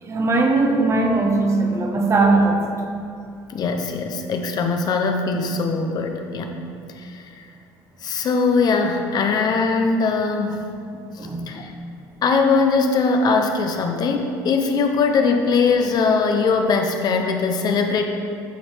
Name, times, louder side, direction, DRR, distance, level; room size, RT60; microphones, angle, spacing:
voice 1, 0.0-2.8 11.2-11.5, right 3 dB, 30° right, 3 dB, 0.9 m, -19 dB
voice 2, 3.5-6.6 7.0-7.5 8.0-10.6 11.2-11.7 12.2-18.0, left 4 dB, 50° left, 4 dB, 0.7 m, -21 dB
9.3 x 3.2 x 4.5 m, 2.4 s
supercardioid pair, 100°, 9 cm